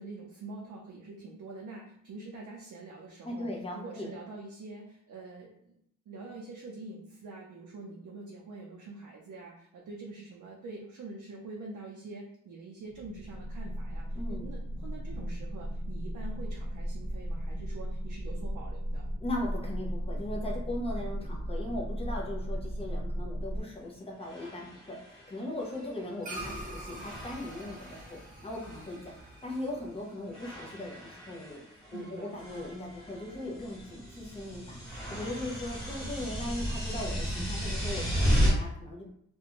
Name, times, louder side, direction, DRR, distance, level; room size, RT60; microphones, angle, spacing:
voice 1, 0.0-5.8 6.1-19.1 31.9-32.3, right 3 dB, 80° right, -3 dB, 0.5 m, -45 dB
voice 2, 3.2-4.1 14.1-14.4 19.2-28.2 28.4-29.0 29.4-39.0, left 1 dB, 20° left, -2 dB, 0.6 m, -38 dB
sound 1, 12.9-23.6, equal, 50° left, 1.1 m, -36 dB
sound 2, 23.6-23.7 24.2-26.6 26.9-28.2 28.5-29.7 30.3-38.5, equal, ahead, 1.2 m, -34 dB
sound 3, 26.2-30.9, right 1 dB, 25° right, 0.5 m, -44 dB
2.5 x 2.2 x 2.9 m, 0.71 s
wide cardioid pair, 170°, 31 cm